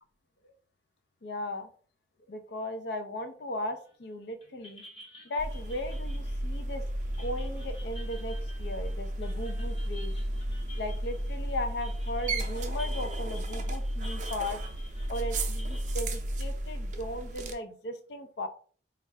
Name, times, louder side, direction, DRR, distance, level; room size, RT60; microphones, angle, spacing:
voice 1, 1.2-1.7 2.3-4.8 5.2-6.8 7.2-10.1 10.8-14.6 15.1-18.5, left 1 dB, 65° left, 8 dB, 0.5 m, -37 dB
sound 1, 3.8-4.1 4.4-15.9, equal, 30° left, 0.8 m, -51 dB
sound 2, 5.4-17.5, right 1 dB, 40° right, 0.5 m, -33 dB
4.4 x 2.4 x 3.2 m, 0.43 s
head